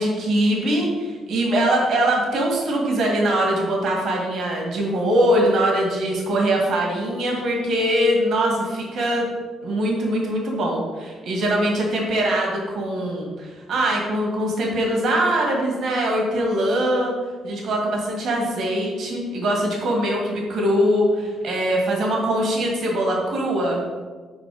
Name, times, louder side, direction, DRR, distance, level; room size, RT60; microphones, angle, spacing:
voice 1, 0.0-9.3 9.6-17.1 17.4-23.8, right 1 dB, 70° right, 0 dB, 1.9 m, -22 dB
7.5 x 4.5 x 5.0 m, 1.4 s
cardioid pair, 90°, 0 cm